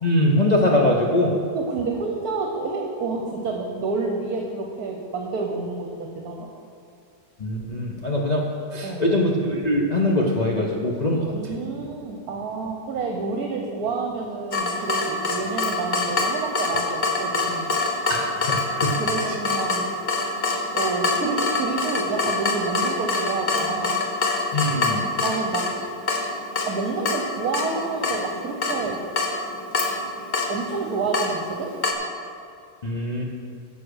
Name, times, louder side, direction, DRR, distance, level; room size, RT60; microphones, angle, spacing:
voice 1, 0.0-1.3 7.4-8.5 8.7-11.3 18.1-19.0 24.5-25.0 32.8-33.2, left 1 dB, 55° left, -2 dB, 0.4 m, -22 dB
voice 2, 1.5-6.5 8.8-9.1 11.3-17.8 19.0-19.9 20.7-24.0 25.2-25.7 26.6-29.0 30.5-31.7, right 4 dB, 60° right, 2 dB, 1.2 m, -29 dB
Water tap faucet / Drip, 14.5-31.9, left 3 dB, 35° left, 0.8 m, -26 dB
9.9 x 7.4 x 6.3 m, 2.3 s
omnidirectional pair, 2.0 m